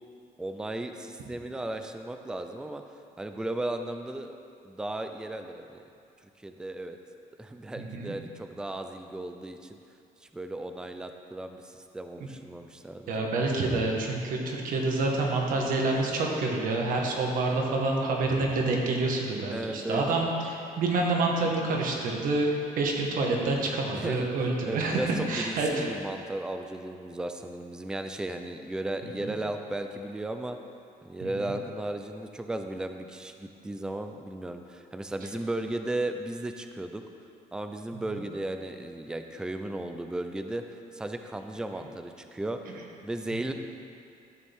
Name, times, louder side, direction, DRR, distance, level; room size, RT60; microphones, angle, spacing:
voice 1, 0.4-2.8 3.2-4.3 4.6-5.8 6.4-7.0 7.4-9.8 10.3-13.1 19.5-20.0 23.9-30.6 31.0-37.0 37.5-42.6 43.0-43.5, right 1 dB, 5° right, 6 dB, 0.4 m, -35 dB
voice 2, 7.8-8.1 13.1-25.0 25.3-25.9 29.2-29.3 31.2-31.4 43.3-43.4, right 2 dB, 65° right, 0 dB, 1.6 m, -28 dB
13.0 x 6.8 x 3.6 m, 2.5 s
cardioid pair, 145°, 15 cm